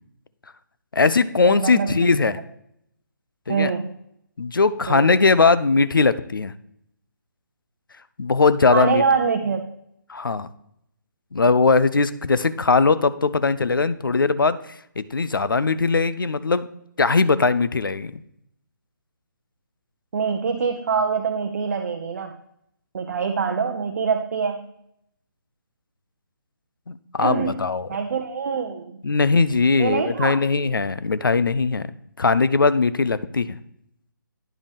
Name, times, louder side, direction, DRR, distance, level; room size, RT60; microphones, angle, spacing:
voice 1, 0.9-2.4 3.5-3.7 4.4-6.5 8.2-9.0 10.1-10.5 11.3-14.6 15.0-16.7 17.0-18.2 26.9-27.9 29.0-31.9 32.2-33.6, left 4 dB, 80° left, 15 dB, 0.5 m, -20 dB
voice 2, 1.4-2.1 3.5-4.0 4.9-5.1 8.7-9.6 20.1-22.4 22.9-24.7 27.2-27.6 27.9-29.0 29.8-30.4, right 6 dB, 50° right, 4 dB, 0.6 m, -24 dB
9.8 x 5.1 x 3.4 m, 0.74 s
figure-of-eight pair, 145°, 11 cm